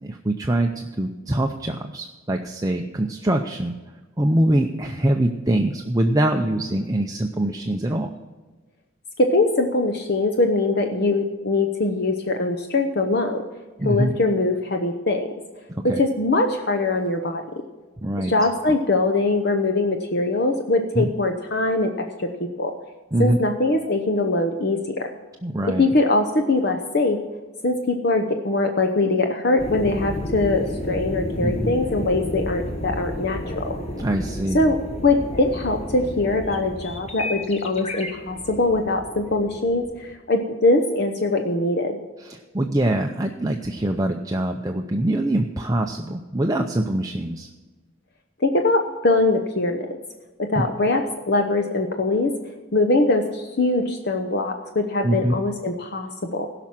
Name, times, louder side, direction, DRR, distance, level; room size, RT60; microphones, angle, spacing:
voice 1, 0.0-3.8 4.2-8.1 13.8-14.1 15.8-16.0 18.0-18.3 21.0-21.1 23.1-23.4 25.4-25.8 31.4-31.7 34.0-34.7 42.2-47.5 55.0-55.3, right 1 dB, 15° right, 3 dB, 0.5 m, -23 dB
voice 2, 9.2-13.4 13.8-15.3 15.8-17.4 18.2-22.3 22.6-22.7 23.2-25.1 25.6-27.2 27.6-33.7 34.5-42.0 48.4-49.8 50.4-52.3 52.7-56.5, left 2 dB, 50° left, 5 dB, 0.9 m, -22 dB
sound 1, 29.6-40.1, left 1 dB, 30° left, 1.3 m, -32 dB
16.5 x 6.0 x 7.4 m, 1.3 s
head